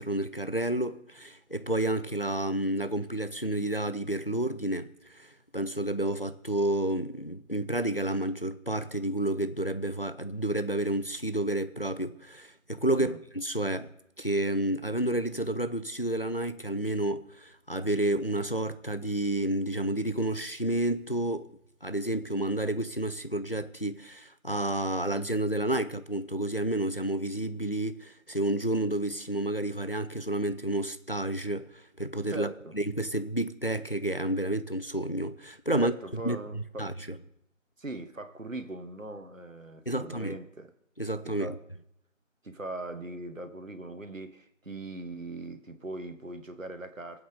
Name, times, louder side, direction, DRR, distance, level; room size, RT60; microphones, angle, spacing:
voice 1, 0.0-21.5 21.8-32.5 32.7-37.2 39.9-40.4 41.0-41.5, right 1 dB, 45° left, 0.6 m, -30 dB
voice 2, 32.3-32.7 35.7-36.9 37.8-40.7 41.2-41.6 42.4-47.2, right 2 dB, 70° right, 1.5 m, -40 dB
21.5 x 8.0 x 3.6 m
figure-of-eight pair, 180°, 40 cm